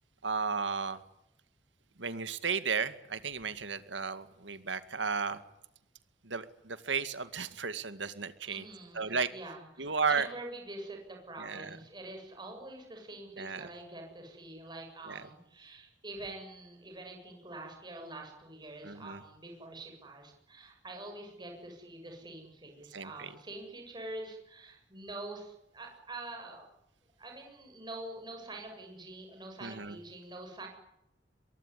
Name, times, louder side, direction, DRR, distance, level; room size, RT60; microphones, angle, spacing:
voice 1, 0.2-1.0 2.0-5.4 6.2-8.7 8.9-9.3 9.8-10.3 11.4-11.8 13.4-13.7 15.1-15.2 18.8-19.2 22.9-23.3 29.6-30.0, right 5 dB, 75° right, 12 dB, 2.1 m, -34 dB
voice 2, 8.5-26.7 27.2-30.7, right 2 dB, 25° right, 2 dB, 7.6 m, -45 dB
23.5 x 23.0 x 10.0 m, 0.85 s
head